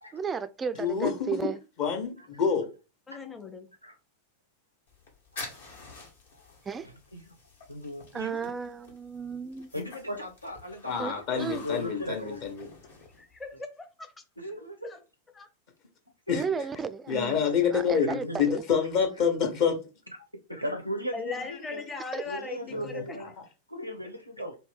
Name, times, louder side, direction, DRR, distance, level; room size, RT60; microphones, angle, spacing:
voice 1, 0.1-1.6 6.7-6.9 8.1-9.7 11.0-11.1 11.4-11.6 16.3-17.4 17.7-18.4 22.1-22.2, right 5 dB, 20° right, 0.3 m, -33 dB
voice 2, 0.8-1.3 1.8-2.7 10.9-12.7 16.3-16.4 17.1-19.8 22.7-22.8, left 7 dB, 45° left, 1.0 m, -27 dB
voice 3, 3.1-3.7 13.1-14.1 14.8-15.0 15.4-15.5 21.1-23.2, left 4 dB, 15° left, 0.7 m, -39 dB
sound 1, 4.9-13.6, left 3 dB, 60° left, 1.2 m, -48 dB
voice 4, 7.7-8.1 9.7-10.2 11.3-12.6 18.2-18.4 20.6-21.8 22.2-23.3 23.7-24.5, equal, 90° right, 0.5 m, -36 dB
voice 5, 9.7-11.7 12.0-12.3 14.4-14.9 16.3-16.4 18.0-18.2 20.5-20.8 24.4-24.5, left 1 dB, 85° left, 0.9 m, -42 dB
3.2 x 2.7 x 3.3 m
figure-of-eight pair, 90°, 0 cm